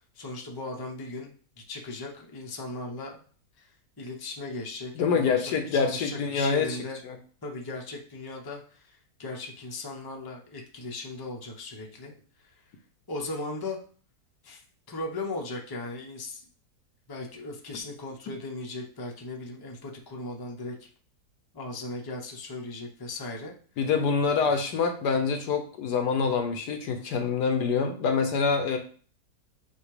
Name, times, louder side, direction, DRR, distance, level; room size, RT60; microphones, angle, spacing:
voice 1, 0.1-1.3 1.7-3.2 3.6-7.0 7.4-12.1 12.4-12.6 13.1-13.8 14.4-14.6 14.9-16.4 17.1-20.9 21.5-23.9 24.4-24.6, left 2 dB, 15° left, 0 dB, 0.8 m, -38 dB
voice 2, 5.0-6.8 7.1-7.2 23.8-28.8, left 5 dB, 70° left, 6 dB, 1.4 m, -26 dB
7.9 x 2.8 x 4.9 m, 0.43 s
omnidirectional pair, 1.8 m